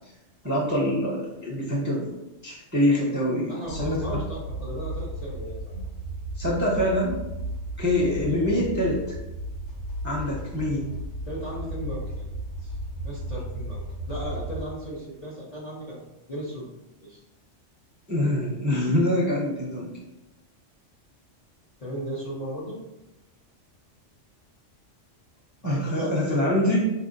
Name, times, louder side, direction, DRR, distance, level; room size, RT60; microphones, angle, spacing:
voice 1, 0.4-2.1 2.4-4.0 6.4-7.2 7.8-9.0 10.0-10.9 18.1-19.9 25.6-26.8, left 1 dB, 20° right, -6 dB, 0.5 m, -25 dB
voice 2, 3.5-5.8 8.0-8.6 11.2-12.3 12.6-12.8 13.0-16.7 17.0-17.2 21.8-22.8 25.6-26.3, equal, 40° left, -6 dB, 0.6 m, -36 dB
sound 1, 3.7-14.6, right 1 dB, 85° left, 1.3 m, -35 dB
4.3 x 2.7 x 2.5 m, 0.97 s
omnidirectional pair, 1.3 m